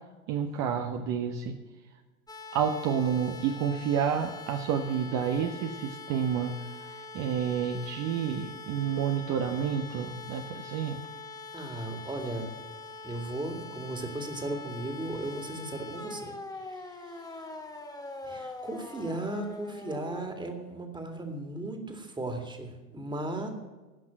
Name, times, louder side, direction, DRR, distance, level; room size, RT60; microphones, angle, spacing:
voice 1, 0.3-1.5 2.5-6.5 6.8-11.0, right 7 dB, 45° right, 5 dB, 1.1 m, -29 dB
sound 1, 2.3-20.3, left 3 dB, 10° left, 1.3 m, -43 dB
voice 2, 11.5-12.5 13.0-17.5 18.2-23.5, right 2 dB, 10° right, 4 dB, 2.3 m, -36 dB
17.0 x 6.0 x 7.5 m, 1.2 s
hypercardioid pair, 85°, 40 cm